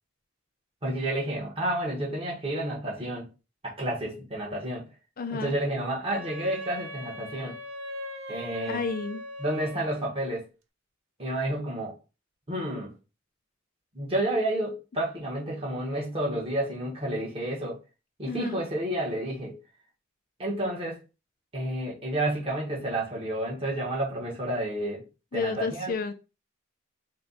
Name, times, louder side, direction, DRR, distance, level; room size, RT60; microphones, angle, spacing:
voice 1, 0.8-3.3 3.6-4.8 5.3-7.5 8.3-8.8 9.4-10.4 11.2-11.9 12.5-12.9 13.9-17.8 18.2-19.6 20.4-21.0 21.5-25.0 25.3-25.9, right 1 dB, 25° right, 1.2 m, -30 dB
voice 2, 5.2-5.5 8.7-9.2 18.3-18.6 25.3-26.1, left 4 dB, 45° left, 0.4 m, -31 dB
Wind instrument woodwind instrument, 6.1-10.2, left 1 dB, 75° right, 0.7 m, -40 dB
4.3 x 2.3 x 4.0 m
head